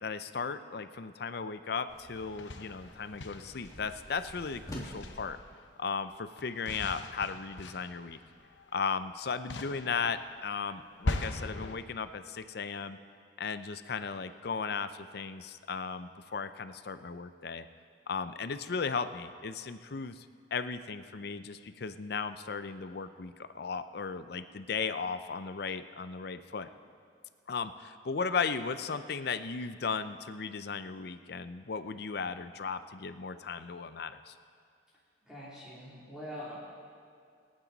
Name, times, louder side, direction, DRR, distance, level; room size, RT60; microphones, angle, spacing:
voice 1, 0.0-5.4 5.8-8.2 8.7-13.0 13.4-17.7 18.1-20.3 20.5-26.7 27.5-34.3, left 5 dB, 60° left, 11 dB, 0.6 m, -36 dB
sound 1, 1.9-5.3, equal, 20° left, 2.3 m, -48 dB
sound 2, 2.2-4.1 4.7-5.6 6.4-9.1 9.5-11.8, left 2 dB, 80° left, 0.9 m, -40 dB
voice 2, 35.3-36.5, equal, 5° right, -9 dB, 3.0 m, -43 dB
26.0 x 8.9 x 4.0 m, 2.3 s
head